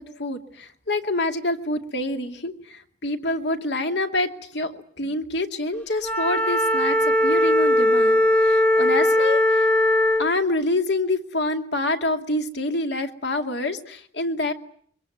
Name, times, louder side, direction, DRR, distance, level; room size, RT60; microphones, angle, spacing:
voice 1, 0.0-4.7 5.0-9.7 10.2-14.5, left 2 dB, 65° left, 6 dB, 2.4 m, -27 dB
Wind instrument woodwind instrument, 6.0-10.3, left 1 dB, 5° left, 1.2 m, -19 dB
25.5 x 24.0 x 9.1 m, 0.63 s
head